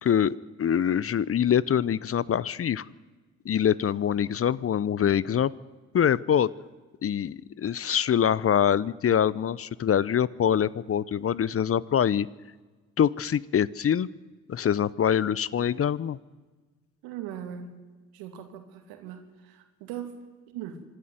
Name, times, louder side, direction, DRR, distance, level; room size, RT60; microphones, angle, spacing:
voice 1, 0.0-2.9 3.4-5.5 5.9-6.5 7.0-12.3 13.0-14.1 14.5-16.2, left 9 dB, 40° left, 22 dB, 0.7 m, -24 dB
voice 2, 17.0-17.8 18.1-20.8, right 9 dB, 80° right, 6 dB, 2.6 m, -40 dB
25.5 x 11.0 x 9.4 m, 1.3 s
hypercardioid pair, 55°, 36 cm